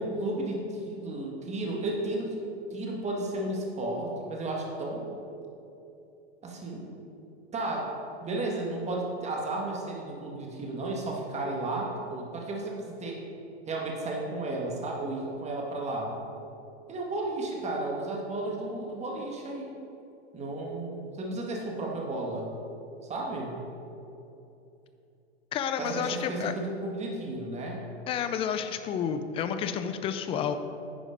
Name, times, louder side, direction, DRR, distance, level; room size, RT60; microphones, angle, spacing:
voice 1, 0.0-2.3 2.7-5.1 6.4-6.9 7.5-7.9 8.2-13.2 13.7-16.2 16.9-19.8 20.3-22.5 23.1-23.6 25.8-27.8, right 2 dB, 20° right, -1 dB, 1.6 m, -33 dB
voice 2, 25.5-26.5 28.1-30.5, left 8 dB, 15° left, 9 dB, 0.4 m, -30 dB
9.9 x 4.9 x 5.1 m, 2.8 s
hypercardioid pair, 115°, 34 cm